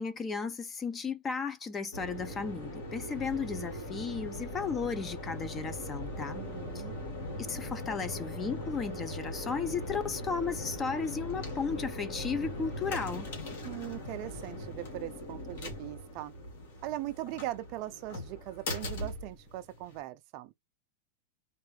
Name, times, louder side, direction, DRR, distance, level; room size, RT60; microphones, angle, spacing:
voice 1, 0.0-6.4 7.5-13.3, left 5 dB, 20° left, 0.6 m, -34 dB
sound 1, 1.9-20.0, left 1 dB, 65° left, 2.1 m, -40 dB
voice 2, 6.3-6.9 13.6-16.3 16.8-20.5, right 15 dB, 45° right, 0.5 m, -40 dB
sound 2, 7.5-10.4 11.4-14.7, left 2 dB, 40° left, 2.3 m, -57 dB
4.3 x 2.5 x 3.2 m
supercardioid pair, 150°, 0 cm